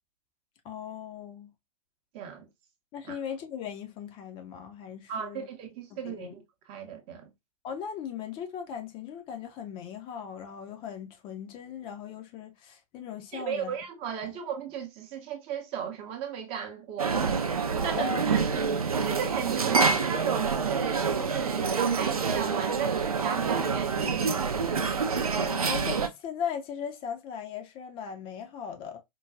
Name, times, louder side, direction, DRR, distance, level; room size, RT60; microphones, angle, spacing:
voice 1, 0.6-1.5 2.9-5.5 5.9-6.3 7.6-13.7 17.9-18.2 18.5-18.7 25.4-29.0, left 8 dB, 30° left, 0.5 m, -38 dB
voice 2, 2.1-2.5 3.0-3.2 5.1-7.3 13.3-24.9, right 8 dB, 30° right, 0.7 m, -36 dB
sound 1, 17.0-26.1, right 5 dB, 80° right, 0.5 m, -27 dB
4.5 x 2.2 x 2.4 m
figure-of-eight pair, 105°, 18 cm